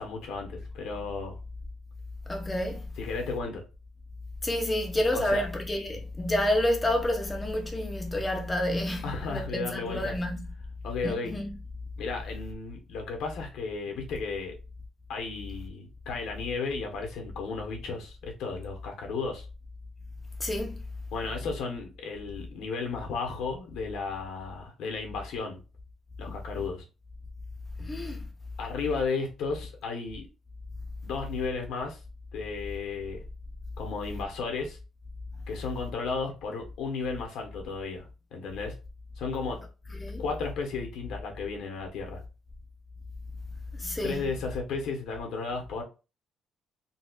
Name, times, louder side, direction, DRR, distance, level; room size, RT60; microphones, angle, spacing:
voice 1, 0.0-1.4 3.0-3.6 5.1-5.4 9.0-10.2 10.8-11.3 12.0-14.6 15.1-19.5 21.1-25.6 26.2-26.8 28.6-30.3 31.0-32.0 32.3-33.2 33.8-34.8 35.5-38.7 39.2-39.6 40.2-42.2 44.0-45.8, left 4 dB, 75° left, 1.1 m, -34 dB
voice 2, 2.3-2.8 4.4-9.0 9.3-10.4 11.0-11.5 20.4-20.7 27.8-28.2 40.0-40.2 43.8-44.2, left 1 dB, 10° left, 0.5 m, -29 dB
4.1 x 2.4 x 2.4 m
cardioid pair, 170°, 0 cm